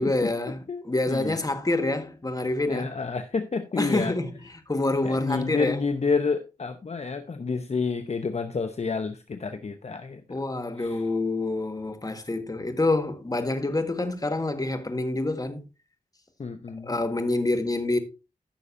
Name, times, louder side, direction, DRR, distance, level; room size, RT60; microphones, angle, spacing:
voice 1, 0.0-2.9 3.8-5.8 10.3-15.6 16.8-18.0, left 2 dB, 25° left, 1.6 m, -27 dB
voice 2, 0.7-1.4 2.7-4.1 5.0-10.2 10.8-11.0 16.4-16.9, left 4 dB, 50° left, 0.8 m, -29 dB
14.0 x 6.5 x 2.7 m
cardioid pair, 60°, 14 cm